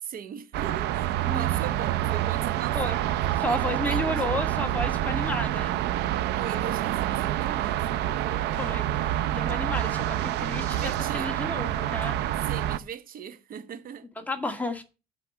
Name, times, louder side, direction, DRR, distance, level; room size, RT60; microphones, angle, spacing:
voice 1, 0.0-4.2 6.4-8.6 10.6-11.3 12.4-14.1, right 8 dB, 55° right, 1.1 m, -39 dB
sound 1, 0.5-12.8, right 12 dB, 80° right, 0.7 m, -27 dB
voice 2, 3.4-5.8 8.6-12.1 14.3-14.8, left 1 dB, 10° left, 2.0 m, -32 dB
8.3 x 6.0 x 7.8 m
cardioid pair, 110°, 17 cm